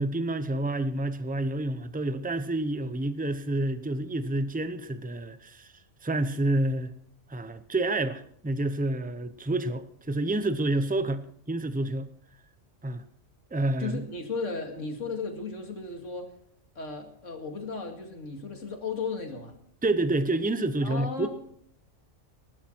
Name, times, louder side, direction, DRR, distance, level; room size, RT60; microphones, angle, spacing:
voice 1, 0.0-5.7 6.0-6.9 7.3-12.1 12.8-13.0 13.5-14.0 19.8-21.3, right 2 dB, 10° right, 0.6 m, -28 dB
voice 2, 13.8-16.3 16.8-19.5 20.8-21.3, left 4 dB, 85° left, 2.6 m, -35 dB
19.5 x 12.0 x 4.5 m
omnidirectional pair, 1.3 m